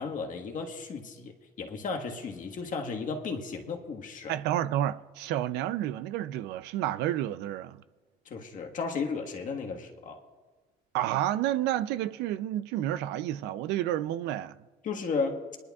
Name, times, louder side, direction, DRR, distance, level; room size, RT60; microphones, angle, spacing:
voice 1, 0.0-4.3 8.2-10.2 14.8-15.4, left 4 dB, 50° left, 1.5 m, -34 dB
voice 2, 4.3-7.8 10.9-14.6, right 12 dB, 90° right, 0.5 m, -30 dB
21.5 x 11.0 x 2.4 m
cardioid pair, 110°, 17 cm